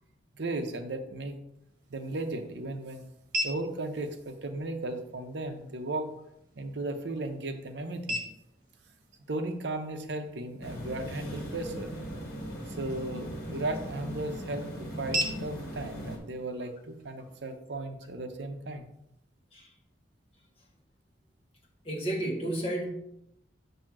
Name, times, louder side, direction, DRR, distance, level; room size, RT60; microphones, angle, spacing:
voice 1, 0.3-1.4 1.9-3.0 3.4-6.1 6.6-8.2 9.3-11.9 12.7-18.9, right 2 dB, 70° right, 6 dB, 0.7 m, -36 dB
sound 1, 1.6-17.6, right 1 dB, 45° right, 1.2 m, -42 dB
sound 2, 10.6-16.2, equal, 50° left, 1.5 m, -39 dB
voice 2, 21.8-22.9, right 1 dB, 30° left, -1 dB, 1.3 m, -31 dB
7.5 x 2.8 x 5.9 m, 0.79 s
head